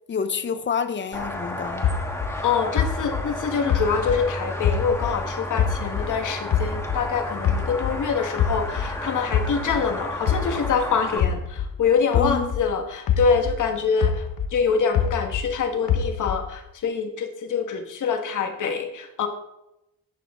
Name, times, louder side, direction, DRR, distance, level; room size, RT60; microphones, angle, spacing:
voice 1, 0.1-1.9 12.1-12.5, left 6 dB, 35° left, 0.5 m, -28 dB
sound 1, 1.1-11.2, left 1 dB, 10° left, 1.4 m, -32 dB
sound 2, 1.8-5.2 5.6-8.0 8.4-12.7 13.1-15.5 15.9-16.6, left 7 dB, 80° left, 1.0 m, -25 dB
voice 2, 2.4-19.3, left 5 dB, 65° left, 1.4 m, -25 dB
11.5 x 8.4 x 3.7 m
wide cardioid pair, 170°, 33 cm